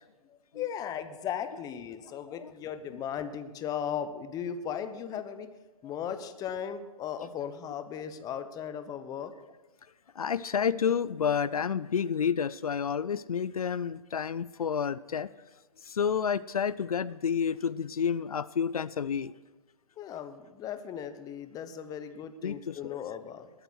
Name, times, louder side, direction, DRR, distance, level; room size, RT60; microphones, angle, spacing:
voice 1, 0.2-5.6 5.8-9.3 20.0-23.5, left 8 dB, 20° left, 10 dB, 1.0 m, -37 dB
voice 2, 10.2-15.3 15.8-19.3 22.4-23.0, left 7 dB, 80° left, 18 dB, 0.4 m, -30 dB
19.5 x 9.0 x 6.3 m, 1.2 s
figure-of-eight pair, 120°, 18 cm